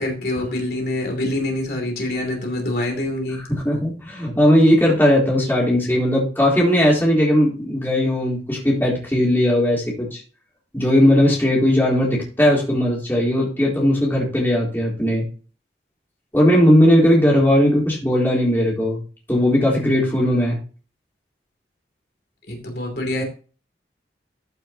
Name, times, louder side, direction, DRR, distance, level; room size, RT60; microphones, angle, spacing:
voice 1, 0.0-3.4 22.5-23.2, left 1 dB, 60° left, 2 dB, 2.9 m, -25 dB
voice 2, 3.3-10.2 10.7-15.2 16.3-19.0 19.3-20.6, equal, 10° left, -4 dB, 3.8 m, -18 dB
13.5 x 6.6 x 3.0 m, 0.36 s
head